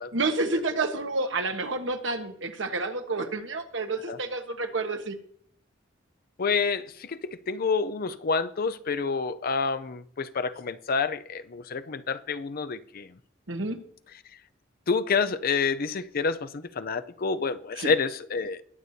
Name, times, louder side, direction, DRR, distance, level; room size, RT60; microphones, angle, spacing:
voice 1, 0.1-5.2 13.5-13.8 17.8-17.9, right 3 dB, 70° right, 1.3 m, -29 dB
voice 2, 6.4-13.1 14.9-18.6, left 5 dB, 50° left, 0.5 m, -28 dB
20.5 x 8.0 x 2.7 m
head